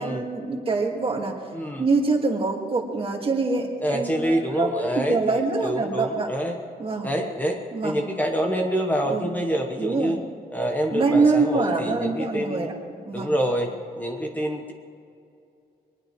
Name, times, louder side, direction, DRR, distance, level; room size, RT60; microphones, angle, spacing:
voice 1, 0.0-1.4 1.8-6.3 6.8-7.1 7.7-8.0 9.0-9.4 9.8-10.2 10.9-12.7 13.1-13.3, right 3 dB, 35° right, 2 dB, 1.9 m, -24 dB
voice 2, 1.5-1.8 3.8-5.2 5.6-6.5 7.0-10.2 10.5-12.7 13.1-14.7, equal, 10° left, 2 dB, 1.1 m, -26 dB
23.0 x 20.0 x 3.2 m, 2.5 s
wide cardioid pair, 155°, 16 cm